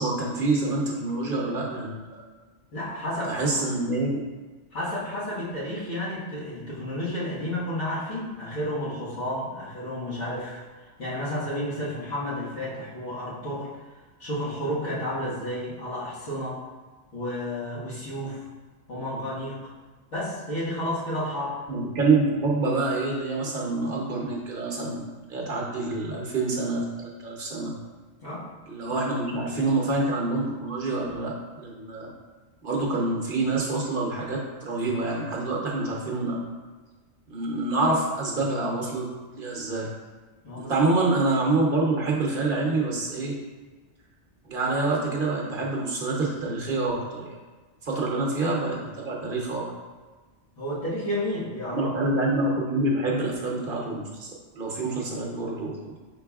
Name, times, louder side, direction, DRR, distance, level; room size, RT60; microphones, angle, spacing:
voice 1, 0.0-2.2 3.2-4.2 21.7-27.7 28.7-32.1 32.6-36.4 37.3-39.9 40.6-43.4 44.4-47.4 47.8-49.7 51.8-56.0, right 2 dB, 55° right, -2 dB, 0.9 m, -27 dB
voice 2, 2.7-3.6 4.7-13.8 14.2-16.6 17.1-18.5 18.9-19.7 20.1-21.6 28.2-28.4 40.4-40.9 47.9-48.1 50.6-52.1, left 1 dB, 85° left, -9 dB, 1.8 m, -31 dB
5.3 x 4.0 x 2.3 m, 1.3 s
omnidirectional pair, 1.2 m